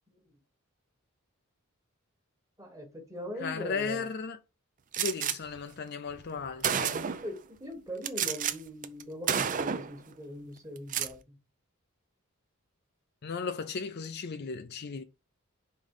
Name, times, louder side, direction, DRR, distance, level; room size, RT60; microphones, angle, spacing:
voice 1, 2.6-4.1 7.2-11.4, equal, 15° right, 1.4 m, -41 dB
voice 2, 3.4-4.4 5.0-7.1 13.2-15.0, left 5 dB, 50° left, 0.5 m, -35 dB
Gunshot gunfire, 4.9-5.4 6.2-6.3 6.6-7.3 8.0-8.5 8.8-9.0 9.3-9.9 10.8-11.1, right 8 dB, 35° right, 0.5 m, -30 dB
5.3 x 3.7 x 5.4 m
head